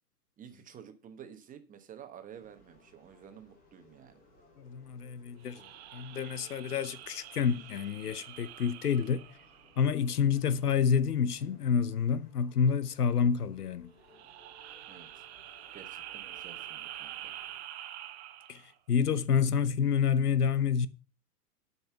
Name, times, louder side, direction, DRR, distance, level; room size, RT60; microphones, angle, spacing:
voice 1, 0.4-4.2 14.9-15.2 15.7-17.3, right 8 dB, 15° right, 1.1 m, -51 dB
sound 1, 2.3-17.6, left 1 dB, 15° left, 3.8 m, -62 dB
voice 2, 4.6-9.2 9.8-13.9 18.5-20.9, left 7 dB, 75° left, 0.9 m, -28 dB
sound 2, 5.4-10.2 14.0-18.7, right 12 dB, 45° right, 1.0 m, -46 dB
8.6 x 5.7 x 6.8 m
figure-of-eight pair, 110°, 46 cm